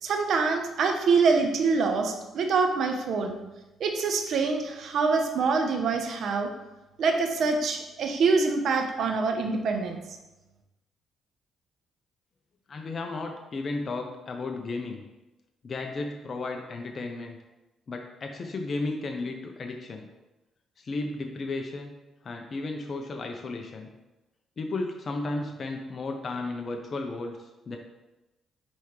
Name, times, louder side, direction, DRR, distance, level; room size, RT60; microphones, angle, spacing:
voice 1, 0.0-3.3 3.8-6.5 7.0-10.2, right 4 dB, 65° right, 5 dB, 0.8 m, -25 dB
voice 2, 12.7-15.0 15.6-17.4 17.9-20.1 20.8-21.9 22.2-23.9 24.6-27.8, left 3 dB, 45° left, 3 dB, 0.6 m, -34 dB
9.5 x 3.4 x 3.1 m, 1.0 s
cardioid pair, 90°, 0 cm